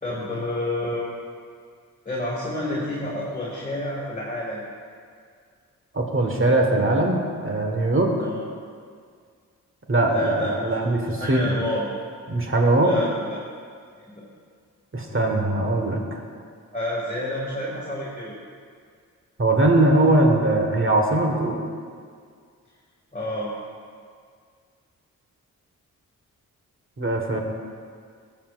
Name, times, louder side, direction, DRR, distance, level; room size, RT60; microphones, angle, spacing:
voice 1, 0.0-1.1 2.1-4.6 8.2-8.4 10.0-10.7 11.2-11.9 12.8-13.4 14.1-14.2 16.7-18.4 23.1-23.5, left 1 dB, 20° left, -7 dB, 2.2 m, -29 dB
voice 2, 5.9-8.1 9.9-11.6 12.3-13.0 14.9-16.0 19.4-21.6 27.0-27.4, right 2 dB, 35° right, 1 dB, 1.5 m, -21 dB
14.0 x 7.1 x 2.5 m, 2.1 s
cardioid pair, 50°, 36 cm